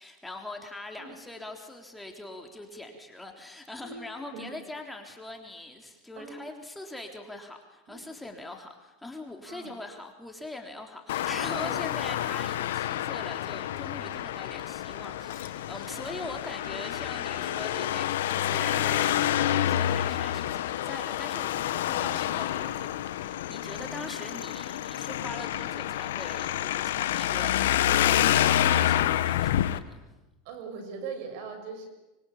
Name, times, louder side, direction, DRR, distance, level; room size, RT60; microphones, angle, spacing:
voice 1, 0.0-30.2, left 2 dB, 5° left, 3 dB, 3.7 m, -42 dB
Traffic noise roadway noise, 11.1-29.8, left 12 dB, 85° left, 1.3 m, -28 dB
voice 2, 30.4-31.9, right 5 dB, 65° right, 8 dB, 6.6 m, -41 dB
25.0 x 24.5 x 8.7 m, 1.0 s
supercardioid pair, 125°, 0 cm